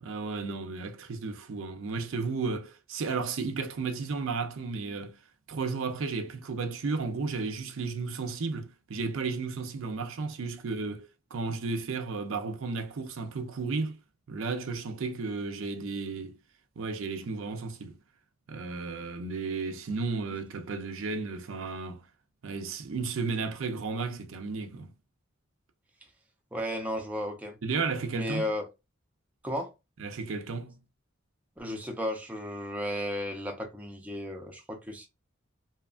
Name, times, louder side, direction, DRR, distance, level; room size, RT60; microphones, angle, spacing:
voice 1, 0.0-5.2 5.5-14.0 14.3-16.4 16.8-18.0 18.5-22.0 22.4-24.9 27.6-28.4 30.0-30.8, right 4 dB, 75° right, 0.5 m, -33 dB
voice 2, 26.5-27.6 28.1-28.7 29.4-29.7 31.6-35.1, equal, 5° right, 0.5 m, -34 dB
2.8 x 2.4 x 2.3 m
head